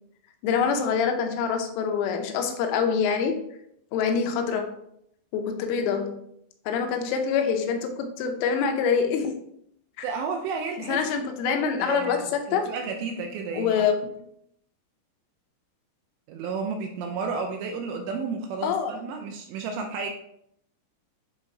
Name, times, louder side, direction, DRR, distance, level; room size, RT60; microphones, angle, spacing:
voice 1, 0.4-3.4 3.9-4.7 5.3-6.2 6.7-9.4 10.0-10.1 10.9-12.7 13.5-13.9 18.6-18.9, left 6 dB, 85° left, 4 dB, 3.3 m, -25 dB
voice 2, 10.0-11.0 11.5-13.8 16.3-20.1, right 5 dB, 85° right, 4 dB, 2.5 m, -32 dB
9.9 x 3.8 x 2.7 m, 0.74 s
omnidirectional pair, 5.6 m